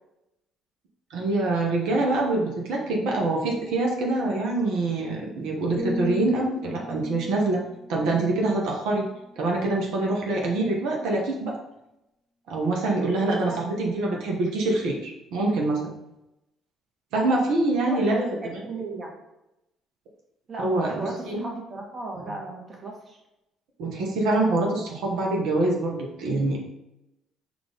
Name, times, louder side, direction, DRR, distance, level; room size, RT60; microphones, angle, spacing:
voice 1, 1.1-7.6 7.9-9.1 9.4-11.6 12.5-15.9 17.1-18.6 20.6-21.4 22.2-22.3 23.8-26.6, right 2 dB, 70° right, -1 dB, 0.7 m, -25 dB
sound 1, 5.8-9.7 10.2-10.5, left 1 dB, 10° right, 0.5 m, -37 dB
voice 2, 13.2-13.6 17.8-19.1 20.5-23.2, right 3 dB, 45° right, 0 dB, 1.3 m, -36 dB
4.6 x 2.5 x 3.8 m, 0.90 s
hypercardioid pair, 50°, 0 cm